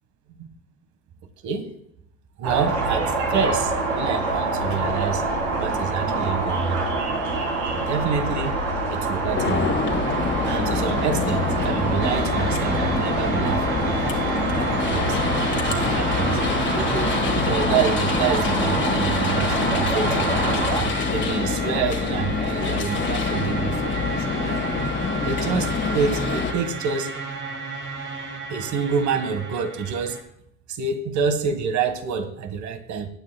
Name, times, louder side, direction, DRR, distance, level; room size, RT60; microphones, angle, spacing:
voice 1, 2.4-5.2 5.6-6.9 7.9-8.6 8.9-9.8 10.5-14.0 14.9-15.2 15.6-16.4 16.7-24.6 25.2-27.1 28.5-30.2 30.7-33.1, right 6 dB, 50° right, 10 dB, 1.5 m, -27 dB
sound 1, 2.4-20.8, right 3 dB, 90° right, 3.6 m, -26 dB
sound 2, 9.3-26.5, left 5 dB, 30° left, 1.8 m, -26 dB
sound 3, 12.0-30.2, right 3 dB, 30° right, 1.9 m, -33 dB
19.0 x 8.9 x 2.2 m, 0.72 s
supercardioid pair, 105°, 38 cm